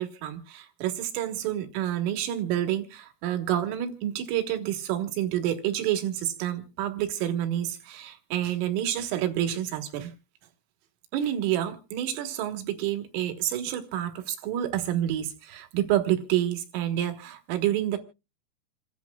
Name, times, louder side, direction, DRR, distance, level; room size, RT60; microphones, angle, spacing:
voice 1, 0.0-10.1 11.1-18.0, right 11 dB, 75° right, 7 dB, 3.9 m, -28 dB
28.0 x 10.5 x 2.3 m, 0.29 s
omnidirectional pair, 5.9 m